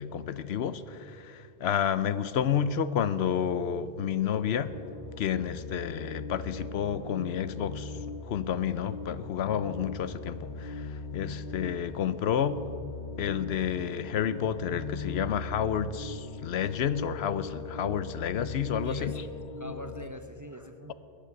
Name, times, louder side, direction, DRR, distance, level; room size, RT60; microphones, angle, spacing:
voice 1, 0.0-4.7 5.2-7.9 8.2-12.6 13.2-19.1, left 8 dB, 75° left, 14 dB, 0.9 m, -30 dB
sound 1, 3.2-20.1, left 4 dB, 50° left, 1.1 m, -40 dB
voice 2, 18.6-20.9, equal, 20° right, 7 dB, 0.6 m, -44 dB
21.5 x 8.3 x 7.7 m, 2.7 s
omnidirectional pair, 1.1 m